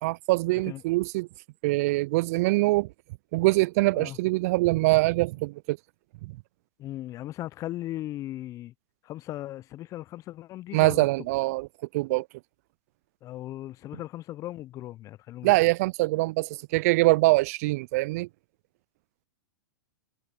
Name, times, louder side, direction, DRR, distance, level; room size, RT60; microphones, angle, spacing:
voice 1, 0.0-1.3 1.6-2.9 3.3-5.8 6.2-6.3 10.7-11.7 11.9-12.3 15.4-18.3, right 22 dB, 50° right, 0.4 m, -23 dB
voice 2, 6.8-8.7 9.0-11.1 13.2-15.5, left 14 dB, 30° left, 0.6 m, -37 dB
hypercardioid pair, 105°, 11 cm